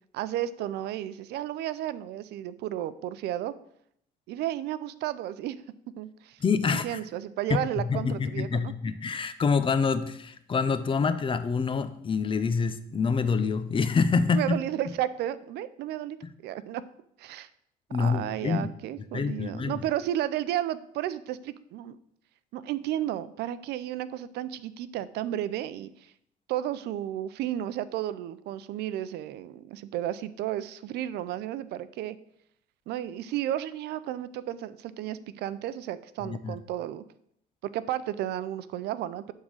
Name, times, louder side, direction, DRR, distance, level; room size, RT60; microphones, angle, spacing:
voice 1, 0.1-3.5 4.3-5.6 6.0-8.7 14.3-16.2 16.4-16.8 17.2-17.5 18.0-22.0 22.5-26.1 26.5-32.2 32.9-37.0 37.7-39.3, right 12 dB, 80° right, 15 dB, 0.5 m, -33 dB
voice 2, 6.4-6.9 7.5-14.6 17.9-18.7 19.1-19.8 36.2-36.6, left 5 dB, 30° left, 11 dB, 0.7 m, -26 dB
11.0 x 3.7 x 6.4 m, 0.71 s
cardioid pair, 110°, 17 cm